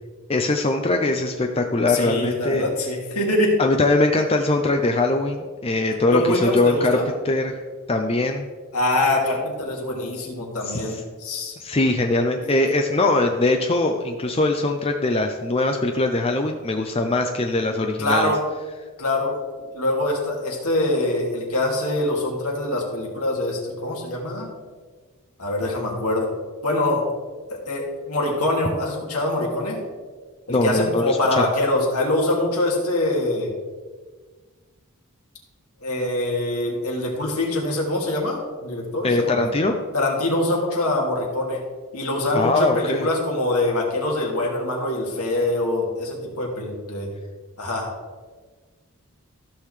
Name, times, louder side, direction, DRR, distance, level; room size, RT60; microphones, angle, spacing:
voice 1, 0.3-2.6 3.6-7.0 7.2-7.6 7.9-8.5 10.7-11.0 11.6-18.3 30.5-31.5 39.0-39.8 42.3-43.1, left 2 dB, 25° left, 4 dB, 0.5 m, -21 dB
voice 2, 1.9-3.6 6.1-7.1 8.7-11.5 18.0-18.4 19.0-19.3 19.7-24.5 25.4-26.3 26.6-27.0 27.5-29.8 30.5-33.5 35.8-39.4 39.9-41.6 41.9-47.1 47.6-47.9, left 1 dB, 85° left, -1 dB, 2.5 m, -24 dB
14.5 x 6.7 x 3.3 m, 1.4 s
head